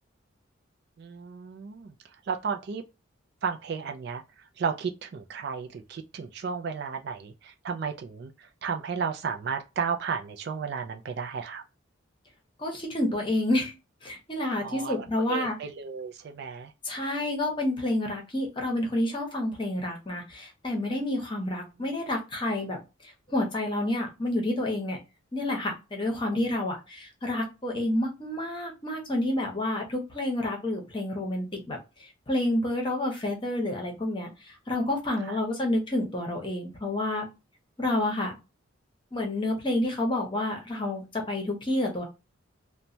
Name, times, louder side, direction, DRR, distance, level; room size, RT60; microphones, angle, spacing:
voice 1, 1.0-1.9 2.3-2.8 3.4-4.2 4.6-11.6 14.6-16.7 35.3-35.4, right 6 dB, 50° right, 0.3 m, -33 dB
voice 2, 12.6-13.7 14.0-15.6 16.8-22.8 23.0-25.0 25.3-37.3 37.8-38.3 39.1-42.0, left 1 dB, 25° left, 0.8 m, -29 dB
3.0 x 2.2 x 2.6 m
head